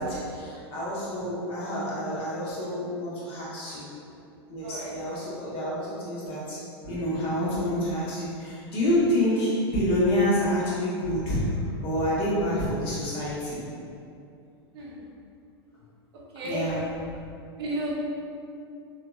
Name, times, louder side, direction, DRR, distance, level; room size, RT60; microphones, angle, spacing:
voice 1, 0.0-3.9 4.5-11.5 11.8-13.6 16.4-16.9, equal, 40° left, -8 dB, 1.0 m, -28 dB
voice 2, 17.6-17.9, right 1 dB, 70° right, -5 dB, 0.7 m, -32 dB
2.8 x 2.3 x 2.2 m, 2.5 s
hypercardioid pair, 110°, 14 cm